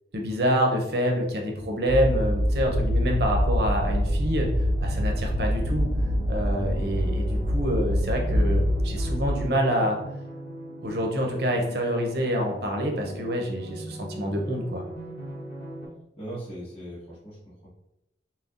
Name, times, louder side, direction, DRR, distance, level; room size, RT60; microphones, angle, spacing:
voice 1, 0.1-4.5 4.8-5.9 6.3-10.0 10.8-14.8, equal, 60° right, 1 dB, 0.8 m, -27 dB
sound 1, 1.9-9.5, equal, 35° right, 0.3 m, -25 dB
sound 2, 3.8-15.9, right 1 dB, 90° left, 1.4 m, -40 dB
voice 2, 16.2-17.7, right 1 dB, 30° left, -7 dB, 1.4 m, -39 dB
5.8 x 2.2 x 2.6 m, 0.87 s
head